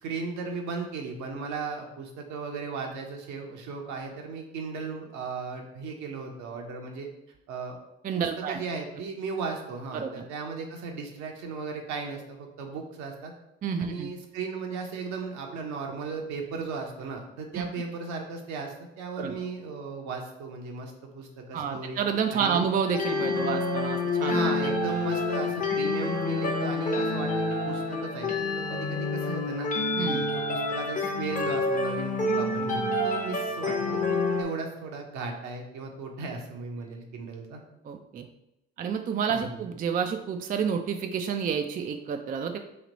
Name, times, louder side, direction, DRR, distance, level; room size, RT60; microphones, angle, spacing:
voice 1, 0.0-7.1 7.5-7.8 8.2-13.3 13.8-22.0 22.3-22.6 24.2-27.3 27.6-28.3 28.7-29.7 30.1-37.6 39.3-39.6, right 4 dB, 65° right, 2 dB, 0.9 m, -36 dB
voice 2, 8.0-8.6 9.9-10.2 13.6-14.1 17.5-17.6 19.2-19.4 21.5-24.5 30.0-30.2 37.8-38.3 38.8-42.6, right 6 dB, 30° right, 6 dB, 0.4 m, -29 dB
sound 1, 22.9-34.4, left 2 dB, 25° left, 0.8 m, -28 dB
3.2 x 2.8 x 3.9 m, 0.88 s
hypercardioid pair, 55°, 30 cm